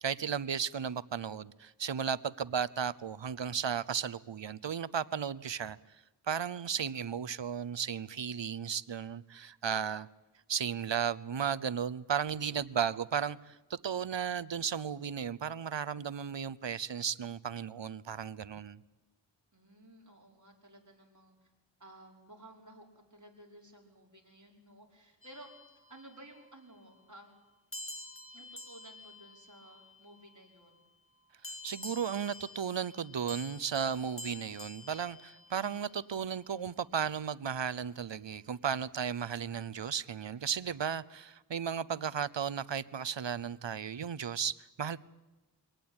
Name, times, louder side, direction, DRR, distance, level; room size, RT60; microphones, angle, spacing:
voice 1, 0.0-5.8 6.3-10.1 10.5-18.8 31.6-45.0, right 7 dB, 80° right, 0.8 m, -35 dB
voice 2, 19.5-21.5 21.8-22.9 23.1-25.5 25.7-27.3 28.3-30.8, right 1 dB, 45° right, 5.5 m, -55 dB
sound 1, 25.2-26.4 27.7-30.4 31.4-36.0, left 2 dB, 30° left, 1.8 m, -48 dB
24.0 x 18.0 x 8.9 m
wide cardioid pair, 55°, 43 cm